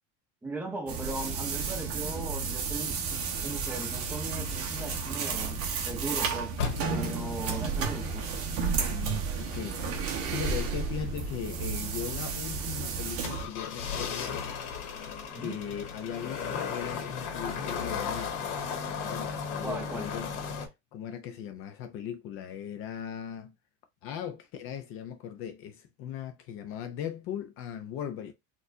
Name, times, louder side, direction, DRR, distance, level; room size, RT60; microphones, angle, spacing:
voice 1, 0.4-5.6 5.9-6.5 6.9-8.2 15.3-15.6 19.6-20.1, right 2 dB, 5° right, 0.9 m, -38 dB
sound 1, 0.9-13.5, right 5 dB, 40° right, 1.0 m, -32 dB
sound 2, 6.6-20.7, left 6 dB, 85° left, 1.3 m, -37 dB
voice 2, 8.9-9.8 10.3-14.3 15.4-18.6 19.0-20.3 20.9-23.5 24.0-28.3, left 9 dB, 40° left, 0.5 m, -38 dB
4.2 x 2.5 x 2.6 m
cardioid pair, 170°, 35 cm